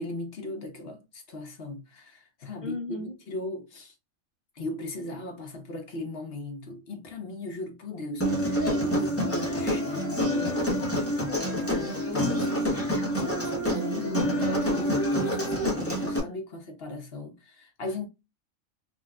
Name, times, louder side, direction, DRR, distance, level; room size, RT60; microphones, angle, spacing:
voice 1, 0.0-3.9 4.5-10.7 11.6-12.3 13.1-18.1, left 2 dB, 55° left, 0.9 m, -38 dB
voice 2, 2.6-3.2 12.1-13.0 13.7-14.4, equal, 45° right, 0.5 m, -36 dB
Human voice, 8.2-16.2, equal, 15° left, 0.6 m, -27 dB
3.6 x 2.4 x 2.2 m
omnidirectional pair, 1.3 m